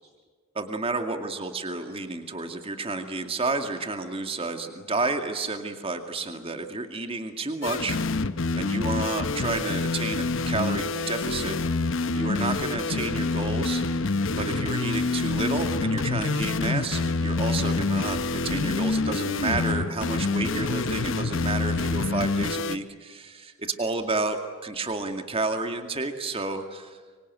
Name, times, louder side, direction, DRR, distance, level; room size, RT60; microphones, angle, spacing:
voice 1, 0.5-8.0 8.5-11.6 12.1-13.8 14.3-27.0, right 3 dB, 25° right, 6 dB, 2.2 m, -31 dB
sound 1, 7.6-22.8, left 3 dB, 60° left, 0.9 m, -27 dB
25.5 x 25.0 x 9.4 m, 1.5 s
head